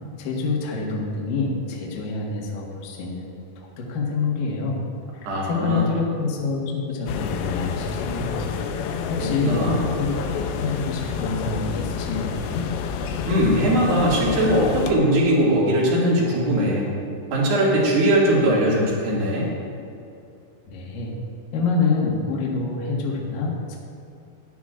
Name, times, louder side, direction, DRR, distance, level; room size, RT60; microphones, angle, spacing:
voice 1, 0.2-3.3 3.6-4.8 5.1-8.5 9.1-9.7 10.0-12.7 20.7-21.1 21.5-23.8, left 4 dB, 60° left, -3 dB, 2.7 m, -27 dB
voice 2, 5.2-5.9 9.2-9.8 13.3-16.9 17.3-19.5, equal, 55° right, -5 dB, 3.7 m, -20 dB
sound 1, 7.1-14.9, left 6 dB, 85° left, 2.7 m, -29 dB
17.0 x 11.5 x 2.5 m, 2.6 s
omnidirectional pair, 5.4 m